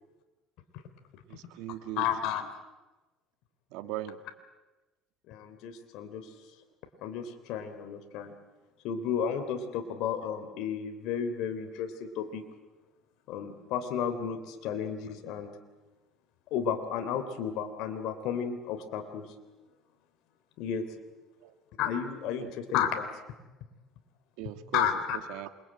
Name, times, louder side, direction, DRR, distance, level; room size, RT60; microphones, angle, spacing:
voice 1, 1.3-2.1 3.7-4.2 21.4-21.5 22.4-22.6 24.4-24.9 25.3-25.5, right 15 dB, 85° right, 9 dB, 2.1 m, -39 dB
voice 2, 2.0-2.5 3.8-4.1 5.3-6.3 7.0-8.3 8.8-12.4 13.3-15.5 16.5-19.3 20.6-20.9 21.8-23.1 24.7-25.2, left 8 dB, 70° left, 6 dB, 3.3 m, -32 dB
27.5 x 22.5 x 8.9 m, 1.1 s
cardioid pair, 110°, 0 cm